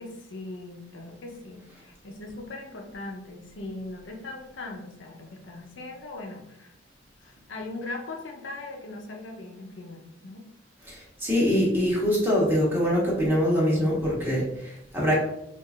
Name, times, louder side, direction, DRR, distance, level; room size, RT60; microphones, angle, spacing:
voice 1, 0.0-6.7 7.2-10.4, left 2 dB, 80° left, 1 dB, 0.7 m, -39 dB
voice 2, 10.8-15.1, equal, 10° right, -5 dB, 1.1 m, -24 dB
4.6 x 2.5 x 2.4 m, 0.80 s
head